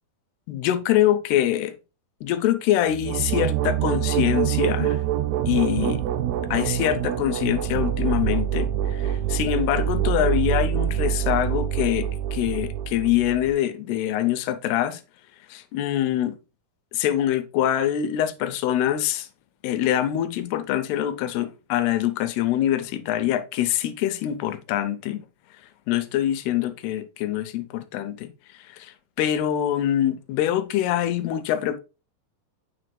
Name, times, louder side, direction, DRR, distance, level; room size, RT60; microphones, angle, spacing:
voice 1, 0.5-1.7 2.2-5.0 5.5-6.0 6.5-15.0 15.5-16.4 16.9-19.3 19.6-25.2 25.9-28.3 28.6-31.8, left 12 dB, 90° left, 2.7 m, -24 dB
sound 1, 2.9-13.5, right 10 dB, 85° right, 2.7 m, -25 dB
7.6 x 6.2 x 2.2 m
omnidirectional pair, 4.5 m